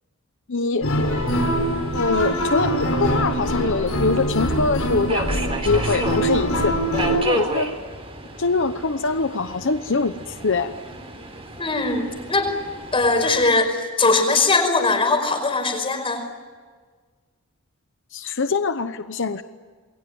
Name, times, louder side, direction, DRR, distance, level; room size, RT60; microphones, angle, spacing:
voice 1, 0.5-0.9 1.9-5.3 5.6-6.7 7.1-7.7 8.4-10.7 18.1-19.4, left 4 dB, 60° left, 10 dB, 0.9 m, -23 dB
sound 1, 0.8-7.2, equal, 85° left, 5.7 m, -23 dB
Subway metro underground, 0.9-13.5, right 2 dB, 30° right, 3.7 m, -33 dB
voice 2, 11.6-12.5 12.9-16.2, left 3 dB, 25° left, 5 dB, 5.2 m, -20 dB
28.5 x 22.0 x 9.4 m, 1.5 s
head